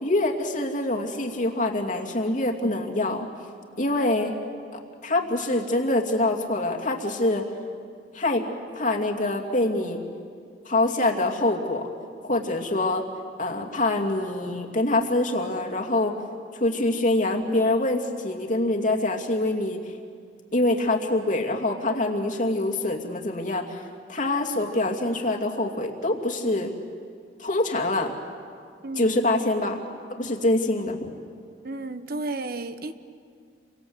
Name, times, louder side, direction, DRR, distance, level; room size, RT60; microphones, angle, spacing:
voice 1, 0.0-3.3 3.8-4.3 5.0-7.4 8.1-8.4 8.7-10.0 10.7-11.9 12.2-13.0 13.4-16.1 16.5-19.9 20.5-23.8 24.1-26.7 27.4-28.1 29.0-29.8 30.1-31.1, left 2 dB, 45° left, 2 dB, 2.6 m, -25 dB
voice 2, 28.8-29.1 31.6-32.9, right 2 dB, 55° right, 10 dB, 1.1 m, -32 dB
30.0 x 24.5 x 8.0 m, 2.2 s
head